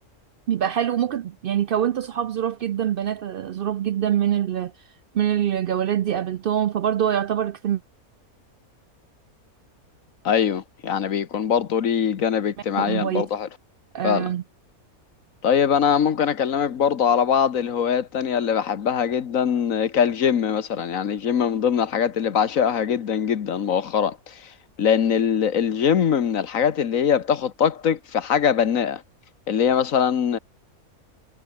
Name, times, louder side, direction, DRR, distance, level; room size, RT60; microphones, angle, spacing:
voice 1, 0.5-4.7 5.1-7.8 12.8-13.3 13.9-14.4, right 10 dB, 85° right, 0.4 m, -24 dB
voice 2, 10.2-13.5 14.0-14.3 15.4-24.4 24.8-29.0 29.5-30.4, left 8 dB, 65° left, 1.5 m, -22 dB
omnidirectional pair, 1.5 m